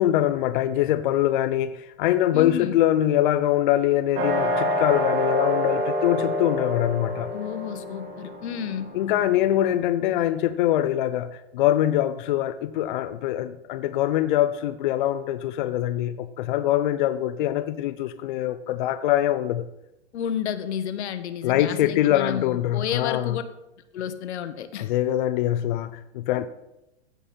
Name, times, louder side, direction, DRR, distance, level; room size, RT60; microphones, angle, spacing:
voice 1, 0.0-7.3 8.9-19.6 21.4-23.4 24.8-26.5, left 12 dB, 45° left, 9 dB, 0.5 m, -23 dB
voice 2, 2.3-2.8 7.3-8.9 20.1-23.4 23.9-24.9, left 9 dB, 75° left, 11 dB, 1.1 m, -31 dB
sound 1, 4.2-9.8, equal, 25° right, 1.5 m, -27 dB
15.5 x 5.4 x 4.3 m, 0.90 s
supercardioid pair, 155°, 34 cm